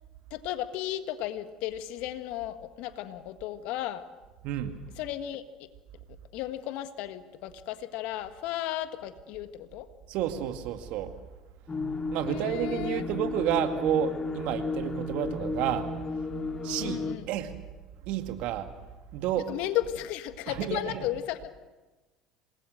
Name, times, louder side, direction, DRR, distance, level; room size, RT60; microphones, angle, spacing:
voice 1, 0.3-4.0 5.0-5.4 6.3-9.9 12.2-13.0 16.8-17.3 19.5-21.5, left 13 dB, 65° left, 10 dB, 1.7 m, -34 dB
voice 2, 4.4-4.8 10.1-11.1 12.1-15.9 16.6-17.5 18.1-18.7 19.1-19.5 20.5-21.0, right 10 dB, 65° right, 7 dB, 2.2 m, -30 dB
sound 1, 11.7-17.1, left 3 dB, 25° left, 2.0 m, -33 dB
27.0 x 20.0 x 6.6 m, 1.2 s
hypercardioid pair, 65°, 2 cm